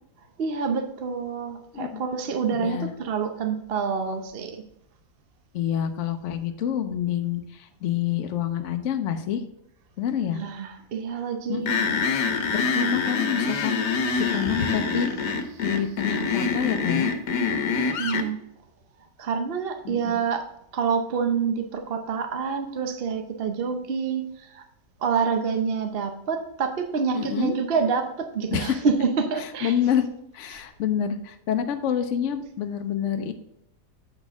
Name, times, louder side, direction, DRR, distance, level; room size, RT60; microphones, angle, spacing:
voice 1, 0.4-4.6 10.4-11.7 17.8-18.4 19.2-20.4 20.7-24.6 25.0-29.7 30.5-30.6, right 5 dB, 50° right, 5 dB, 0.7 m, -27 dB
voice 2, 2.5-2.9 5.5-9.5 10.0-10.4 11.5-12.1 12.5-15.1 15.6-17.1 19.8-20.2 27.1-27.6 28.5-28.8 29.4-30.1 30.3-33.3, left 9 dB, 60° left, 7 dB, 0.8 m, -27 dB
sound 1, 11.7-18.3, left 5 dB, 80° left, 1.4 m, -25 dB
8.0 x 6.3 x 3.5 m, 0.80 s
omnidirectional pair, 1.8 m